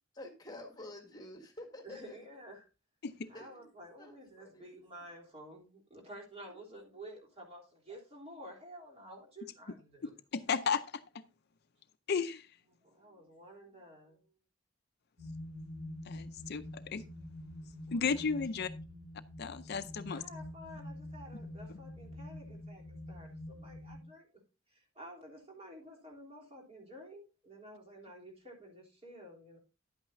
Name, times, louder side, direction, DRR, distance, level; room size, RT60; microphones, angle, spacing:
voice 1, 0.1-2.3 3.3-3.7 4.0-4.8 6.5-6.6 17.9-18.1, left 1 dB, 20° left, 1.6 m, -50 dB
voice 2, 1.8-2.7 3.3-10.1 12.8-14.3 20.1-24.3 24.7-29.6, right 1 dB, 30° right, 3.4 m, -51 dB
voice 3, 10.3-11.0 12.1-12.5 16.1-17.0 17.9-18.7 19.4-20.2 21.7-21.8, left 5 dB, 55° left, 0.5 m, -34 dB
sound 1, 15.2-24.0, left 1 dB, 70° right, 2.4 m, -46 dB
10.5 x 8.8 x 2.6 m
head